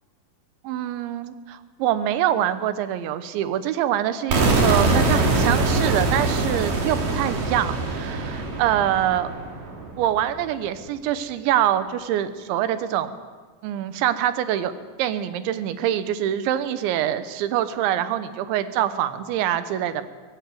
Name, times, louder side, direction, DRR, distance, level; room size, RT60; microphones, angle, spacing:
voice 1, 0.7-9.3 10.0-13.2 13.6-14.7 15.0-20.1, right 11 dB, 90° right, 12 dB, 3.4 m, -25 dB
sound 1, 4.3-10.2, right 3 dB, 50° right, 4.4 m, -23 dB
23.0 x 16.5 x 9.4 m, 1.5 s
omnidirectional pair, 5.1 m